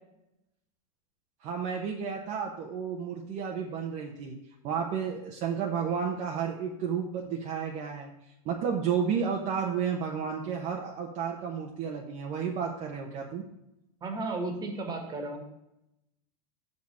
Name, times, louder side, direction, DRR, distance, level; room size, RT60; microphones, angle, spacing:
voice 1, 1.4-4.4 4.6-8.1 8.4-13.4, right 7 dB, 40° right, 0 dB, 1.1 m, -32 dB
voice 2, 14.0-15.4, right 2 dB, 20° right, 3 dB, 1.8 m, -34 dB
6.7 x 5.4 x 6.7 m, 0.86 s
supercardioid pair, 135°, 20 cm